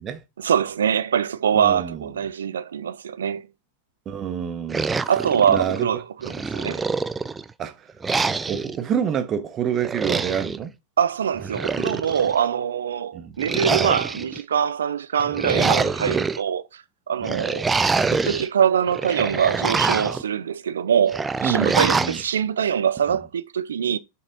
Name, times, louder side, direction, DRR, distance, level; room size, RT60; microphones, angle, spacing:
voice 1, 0.4-3.4 5.1-6.8 11.0-17.7 18.1-24.0, right 8 dB, 65° right, 0.5 m, -23 dB
voice 2, 1.5-2.0 4.1-4.9 5.5-5.9 7.6-7.9 8.5-10.7 13.1-13.3 17.2-17.5 21.4-22.2, right 8 dB, 30° right, 1.0 m, -27 dB
sound 1, 4.7-5.8 6.2-7.5 8.0-8.8 9.8-10.6 11.4-12.3 13.4-14.4 15.2-16.4 17.2-18.5 18.9-20.2 21.1-22.2, right 4 dB, 15° right, 0.4 m, -25 dB
7.4 x 4.2 x 3.8 m
figure-of-eight pair, 90°, 0 cm